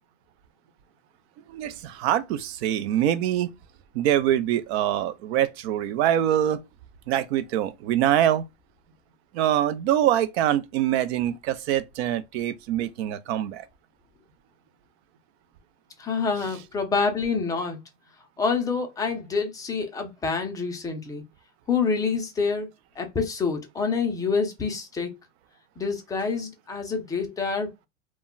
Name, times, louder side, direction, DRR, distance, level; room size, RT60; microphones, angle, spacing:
voice 1, 1.5-3.5 3.9-6.6 7.1-8.4 9.3-13.6, right 11 dB, 60° right, 0.5 m, -24 dB
voice 2, 16.0-17.8 18.4-21.2 21.7-22.7 23.0-25.2 25.8-27.9, left 5 dB, 10° left, 0.4 m, -27 dB
2.2 x 2.0 x 3.7 m
supercardioid pair, 125°, 37 cm